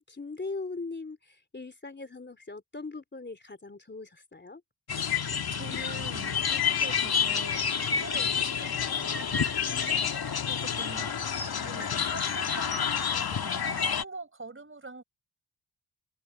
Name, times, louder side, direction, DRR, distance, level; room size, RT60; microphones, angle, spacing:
voice 1, 0.1-4.6 9.6-10.2, left 3 dB, 25° left, 3.3 m, -40 dB
sound 1, 4.9-14.0, left 7 dB, 65° left, 2.3 m, -29 dB
voice 2, 5.5-9.4 10.4-15.0, right 3 dB, 30° right, 4.6 m, -45 dB
open air
cardioid pair, 85°, 40 cm